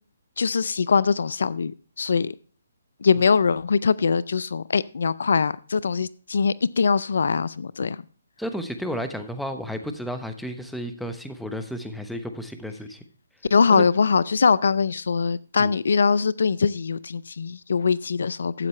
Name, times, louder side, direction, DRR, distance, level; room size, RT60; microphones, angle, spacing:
voice 1, 0.4-1.7 2.0-2.3 3.0-8.0 13.5-18.7, left 5 dB, 70° left, 0.4 m, -22 dB
voice 2, 8.4-13.0 13.7-13.8 15.6-15.7, equal, ahead, 0.9 m, -32 dB
12.5 x 8.4 x 3.2 m
hypercardioid pair, 150°, 0 cm